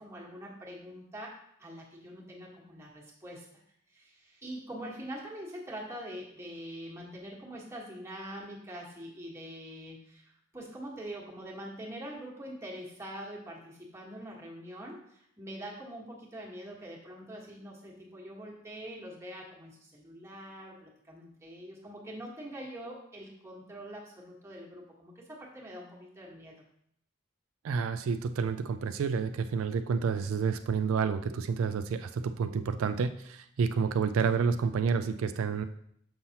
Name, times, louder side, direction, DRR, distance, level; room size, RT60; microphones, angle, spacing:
voice 1, 0.0-3.6 3.9-26.6, equal, 15° right, -3 dB, 1.3 m, -44 dB
voice 2, 27.6-35.6, right 5 dB, 80° right, 9 dB, 0.4 m, -29 dB
6.7 x 5.6 x 2.8 m, 0.70 s
head